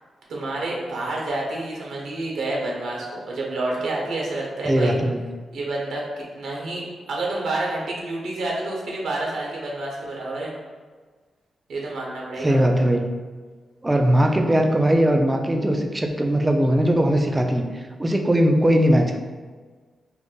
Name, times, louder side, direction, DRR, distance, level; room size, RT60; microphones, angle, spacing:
voice 1, 0.3-4.9 5.5-10.5 11.7-12.6, right 2 dB, 85° right, -3 dB, 0.6 m, -29 dB
voice 2, 4.6-5.3 12.4-13.2 13.8-19.2, equal, 15° right, 3 dB, 0.3 m, -20 dB
2.5 x 2.1 x 3.7 m, 1.4 s
cardioid pair, 75°, 0 cm